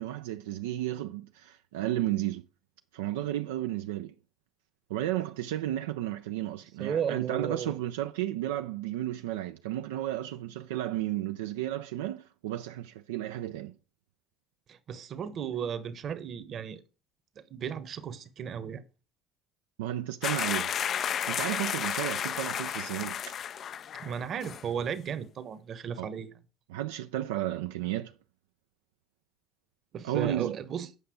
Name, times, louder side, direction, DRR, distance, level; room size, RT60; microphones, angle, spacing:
voice 1, 0.0-2.5 2.9-4.1 4.9-13.7 19.8-20.7 21.3-23.2 26.0-26.1 26.7-28.1 30.0-30.6, right 13 dB, 85° right, 0.3 m, -33 dB
voice 2, 6.8-7.7 14.7-16.8 17.5-18.8 24.0-26.3 29.9-30.9, right 8 dB, 50° right, 1.0 m, -34 dB
sound 1, 20.2-24.2 24.4-24.6, left 9 dB, 50° left, 0.3 m, -32 dB
8.0 x 5.5 x 5.0 m
hypercardioid pair, 75°, 0 cm